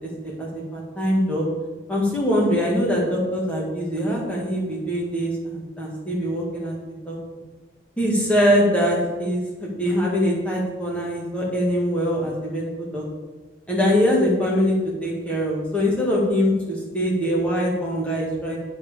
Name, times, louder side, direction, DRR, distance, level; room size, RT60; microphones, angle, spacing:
voice 1, 0.0-1.5 1.9-6.8 7.1-7.2 8.0-13.0 13.7-14.7 15.0-18.6, equal, 5° left, -4 dB, 1.9 m, -23 dB
8.3 x 4.6 x 7.0 m, 1.2 s
head